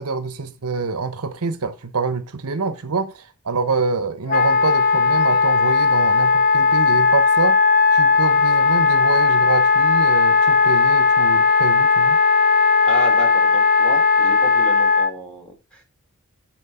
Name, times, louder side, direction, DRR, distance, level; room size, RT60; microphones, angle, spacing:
voice 1, 0.0-7.6 7.9-12.2, right 4 dB, 85° right, 0.9 m, -26 dB
Wind instrument woodwind instrument, 4.3-15.1, left 4 dB, 40° left, 0.6 m, -16 dB
voice 2, 12.8-15.8, right 1 dB, 5° left, 3.1 m, -32 dB
10.0 x 4.5 x 4.9 m
head